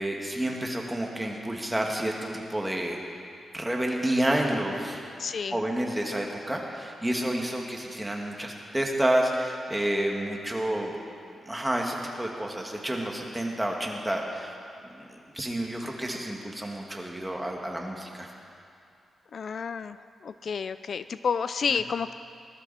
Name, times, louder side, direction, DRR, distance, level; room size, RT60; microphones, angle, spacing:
voice 1, 0.0-3.0 3.5-5.0 5.5-10.9 11.5-14.5 15.0-18.3, right 1 dB, 10° right, 0 dB, 2.0 m, -29 dB
voice 2, 5.2-5.6 19.3-20.0 20.2-22.1, left 6 dB, 60° left, 13 dB, 0.3 m, -30 dB
20.0 x 12.5 x 4.3 m, 2.5 s
cardioid pair, 90°, 0 cm